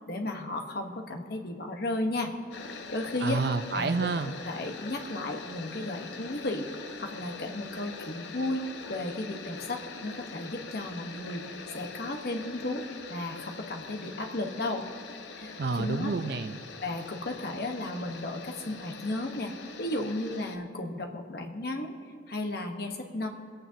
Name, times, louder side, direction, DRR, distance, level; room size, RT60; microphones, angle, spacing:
voice 1, 0.1-2.3 2.6-3.4 3.7-3.9 4.4-8.6 8.9-11.5 11.7-14.9 15.4-16.1 16.8-19.5 19.8-21.9 22.3-23.3, left 2 dB, 55° left, 3 dB, 1.1 m, -34 dB
sound 1, 2.5-20.6, left 4 dB, 70° left, 0.7 m, -43 dB
voice 2, 3.2-4.4 15.6-16.7, right 4 dB, 55° right, 10 dB, 0.5 m, -29 dB
23.0 x 8.9 x 2.8 m, 2.2 s
head